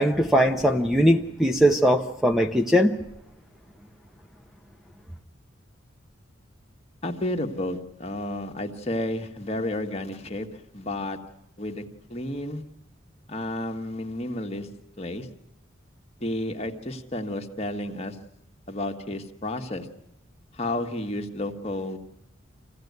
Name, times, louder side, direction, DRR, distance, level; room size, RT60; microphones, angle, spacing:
voice 1, 0.0-3.0, equal, ahead, 0.8 m, -20 dB
voice 2, 7.0-10.5 10.7-11.2 11.6-11.8 12.1-12.6 13.3-14.7 15.0-15.3 16.2-18.2 18.7-19.9 20.5-22.0, left 1 dB, 30° left, 1.7 m, -31 dB
26.0 x 16.0 x 9.5 m
head